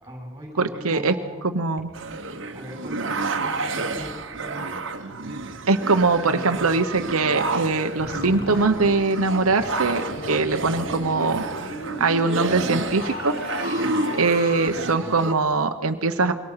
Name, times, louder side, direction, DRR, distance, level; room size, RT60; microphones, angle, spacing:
voice 1, 0.0-1.4 2.5-4.7, equal, 15° right, 0 dB, 6.4 m, -39 dB
voice 2, 0.6-1.1 1.4-1.9 5.7-11.4 12.0-13.3 14.2-16.3, right 3 dB, 90° right, 7 dB, 1.0 m, -22 dB
sound 1, 1.9-15.3, right 3 dB, 60° right, 1.5 m, -30 dB
sound 2, 8.0-14.7, left 3 dB, 45° left, 1.2 m, -35 dB
25.5 x 23.5 x 5.8 m, 1.3 s
head